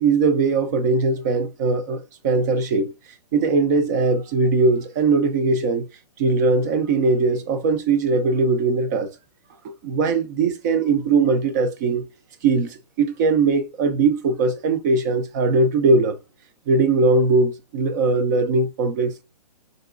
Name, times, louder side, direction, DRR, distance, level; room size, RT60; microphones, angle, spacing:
voice 1, 0.0-2.9 3.3-5.9 6.2-9.1 9.8-12.0 12.4-16.2 16.7-19.2, right 3 dB, 25° right, 0.5 m, -20 dB
3.8 x 2.9 x 2.4 m
hypercardioid pair, 155°, 20 cm